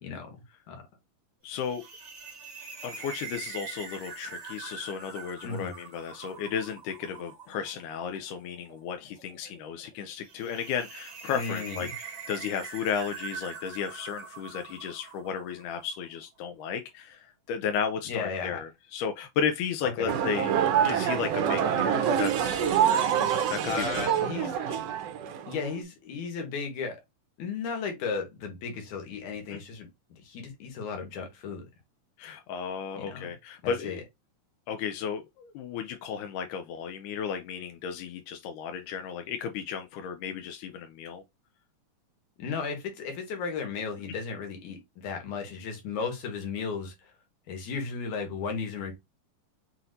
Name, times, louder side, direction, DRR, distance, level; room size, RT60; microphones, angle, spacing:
voice 1, 0.0-0.3 0.7-0.8 5.4-5.7 11.3-11.9 18.1-18.6 20.0-20.1 23.6-24.6 25.5-27.0 27.4-29.9 30.2-31.6 33.0-33.3 33.6-34.0 42.4-47.1 47.5-48.9, left 5 dB, 75° left, 2.7 m, -35 dB
voice 2, 1.4-1.8 2.8-20.6 20.8-22.8 23.5-24.1 24.4-24.8 29.5-29.6 32.2-34.0 34.7-41.2, left 7 dB, 90° left, 2.1 m, -34 dB
sound 1, 1.5-15.8, right 5 dB, 45° right, 1.6 m, -44 dB
sound 2, 20.1-25.8, right 9 dB, 75° right, 1.5 m, -26 dB
6.0 x 2.8 x 2.5 m
omnidirectional pair, 3.5 m